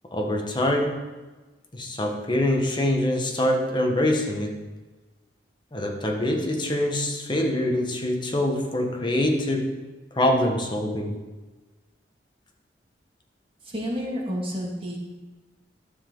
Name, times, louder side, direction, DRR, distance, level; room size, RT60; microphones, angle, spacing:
voice 1, 0.1-1.0 1.7-4.6 5.7-9.7 10.1-11.2, left 1 dB, 25° left, 1 dB, 1.3 m, -24 dB
voice 2, 13.7-15.0, equal, 30° right, -3 dB, 2.2 m, -30 dB
12.0 x 7.4 x 3.9 m, 1.2 s
head